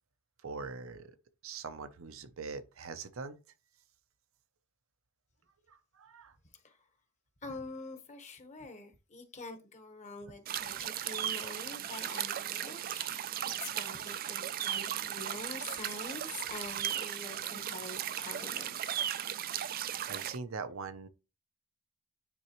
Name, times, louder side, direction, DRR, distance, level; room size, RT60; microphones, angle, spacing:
voice 1, 0.4-1.2 1.4-3.4 5.7-6.4 10.7-10.9 19.8-21.1, right 4 dB, 75° right, 0.7 m, -43 dB
voice 2, 7.4-13.3 13.6-18.7, left 3 dB, 35° left, 1.1 m, -45 dB
sound 1, 10.5-20.4, right 10 dB, 45° right, 0.4 m, -36 dB
9.5 x 3.8 x 3.0 m
head